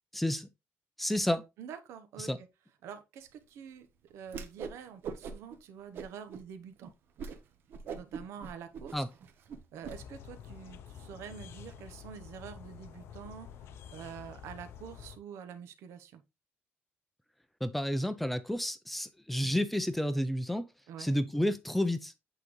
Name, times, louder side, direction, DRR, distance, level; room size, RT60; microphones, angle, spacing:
voice 1, 0.1-0.5 1.0-1.4 2.2-2.4 8.9-9.1 17.6-20.7 21.0-22.1, left 1 dB, 5° left, 0.5 m, -30 dB
voice 2, 1.6-2.5 2.8-6.9 7.9-9.0 9.7-16.2 20.9-21.1, right 8 dB, 80° right, 1.0 m, -47 dB
Whoosh swoosh swish, 4.3-4.8 5.0-5.6 5.9-6.4 6.8-6.9 7.2-7.4 7.7-9.9, right 6 dB, 55° right, 0.9 m, -41 dB
sound 1, 9.8-15.2, left 8 dB, 65° left, 0.6 m, -49 dB
8.2 x 3.9 x 3.1 m
cardioid pair, 175°, 5 cm